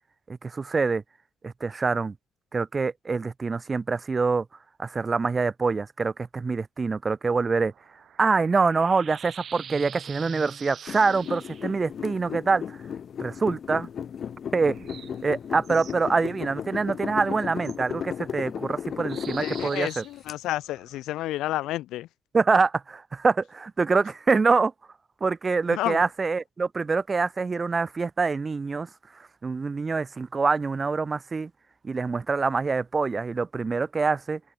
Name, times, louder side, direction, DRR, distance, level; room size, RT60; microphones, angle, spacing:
voice 1, 0.3-1.0 1.4-2.1 2.5-4.4 4.8-7.7 8.2-12.8 13.2-13.9 14.5-14.7 15.2-20.0 22.3-24.7 25.2-28.9 29.4-31.5 31.8-34.4, right 4 dB, 30° right, 1.4 m, -25 dB
sound 1, 7.4-11.8 14.6-16.0 17.6-17.8 19.1-21.0, right 8 dB, 60° right, 3.1 m, -45 dB
sound 2, 10.9-20.3, left 8 dB, 55° left, 2.7 m, -35 dB
voice 2, 19.4-22.1 25.7-26.0, left 15 dB, 90° left, 0.6 m, -30 dB
cardioid pair, 90°, 0 cm